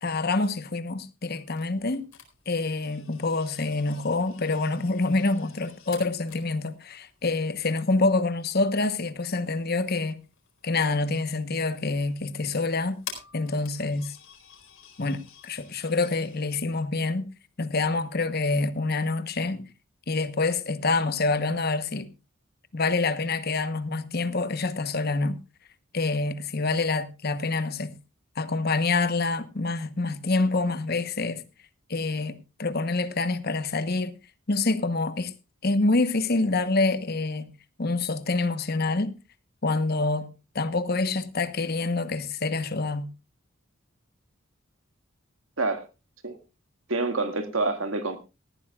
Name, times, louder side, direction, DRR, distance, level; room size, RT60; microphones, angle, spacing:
voice 1, 0.0-2.1 2.5-10.2 10.6-13.0 13.3-14.2 15.0-17.3 17.6-19.7 20.1-22.1 22.7-25.4 25.9-28.0 28.3-31.4 31.9-34.1 34.5-35.3 35.6-37.5 37.8-39.1 39.6-40.3 40.5-43.1, left 3 dB, 50° left, 1.0 m, -26 dB
sound 1, 1.3-16.5, left 7 dB, 90° left, 4.3 m, -50 dB
voice 2, 46.9-48.2, right 3 dB, 80° right, 2.0 m, -27 dB
18.5 x 14.5 x 2.4 m
head